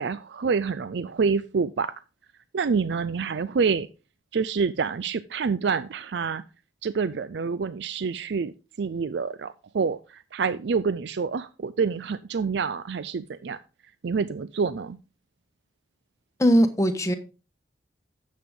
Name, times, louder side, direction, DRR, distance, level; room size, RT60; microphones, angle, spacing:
voice 1, 0.0-1.9 2.5-3.9 4.3-6.4 6.8-13.6 14.0-15.0, right 5 dB, 65° right, 0.4 m, -27 dB
voice 2, 16.4-17.1, equal, 15° left, 1.1 m, -20 dB
10.5 x 7.7 x 3.6 m
head